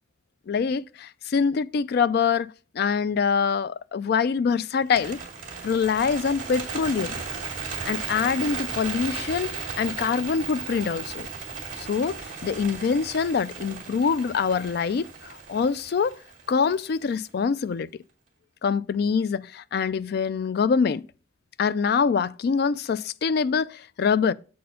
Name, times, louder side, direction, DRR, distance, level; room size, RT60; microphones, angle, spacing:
voice 1, 0.5-5.2 5.6-7.1 7.9-11.3 11.8-12.2 12.4-16.2 16.5-17.9 18.6-21.0 21.6-24.3, left 6 dB, 50° left, 0.3 m, -25 dB
Bird, 4.8-17.0, right 5 dB, 40° right, 2.2 m, -36 dB
7.5 x 4.3 x 5.6 m
head